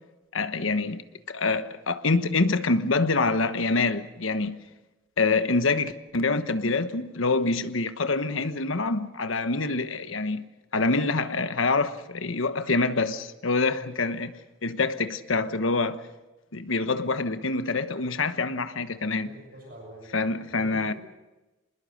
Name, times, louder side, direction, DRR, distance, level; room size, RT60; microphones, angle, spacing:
voice 1, 0.3-4.6 5.2-10.4 10.7-14.3 14.6-16.0 16.5-19.3 20.1-20.9, left 3 dB, 80° left, 1.2 m, -26 dB
voice 2, 19.5-21.0, right 1 dB, 45° right, 6.9 m, -46 dB
26.0 x 20.5 x 6.5 m
head